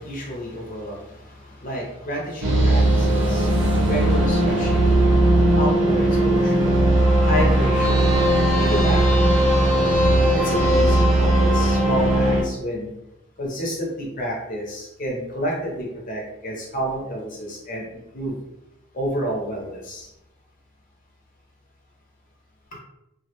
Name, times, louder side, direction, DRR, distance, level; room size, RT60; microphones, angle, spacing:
voice 1, 0.0-9.3 10.3-12.9 13.4-18.4 18.9-20.1, equal, 40° left, -2 dB, 0.6 m, -30 dB
sound 1, 2.4-12.4, right 1 dB, 65° right, 0.7 m, -18 dB
2.3 x 2.1 x 2.8 m, 0.89 s
head